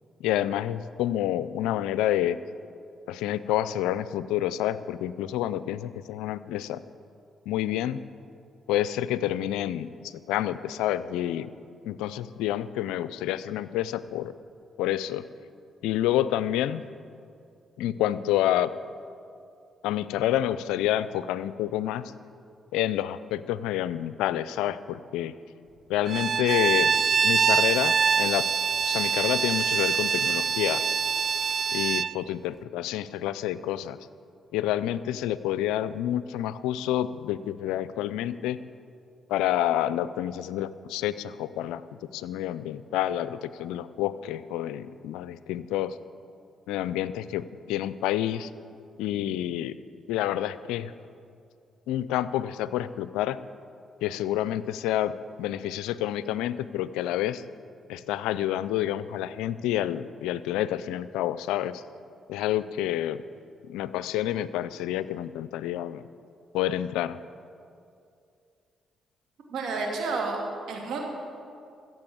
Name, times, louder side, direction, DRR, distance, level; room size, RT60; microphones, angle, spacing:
voice 1, 0.2-2.4 3.1-6.8 7.5-8.0 8.7-11.5 11.8-14.3 14.8-15.2 15.8-16.8 17.8-18.7 19.8-22.0 22.7-25.3 25.9-28.5 28.8-30.8 31.7-34.0 34.5-38.6 39.3-41.8 42.1-46.0 46.7-48.5 49.0-49.7 50.1-50.9 51.9-53.4 54.0-55.1 55.4-57.4 57.9-61.8 62.3-63.2 63.7-66.0 66.5-67.2, left 12 dB, 90° left, 15 dB, 0.4 m, -28 dB
Bowed string instrument, 26.1-32.1, right 6 dB, 50° right, 0.3 m, -24 dB
voice 2, 69.5-71.0, right 3 dB, 75° right, 0 dB, 2.6 m, -30 dB
15.0 x 7.5 x 7.8 m, 2.4 s
supercardioid pair, 55°, 0 cm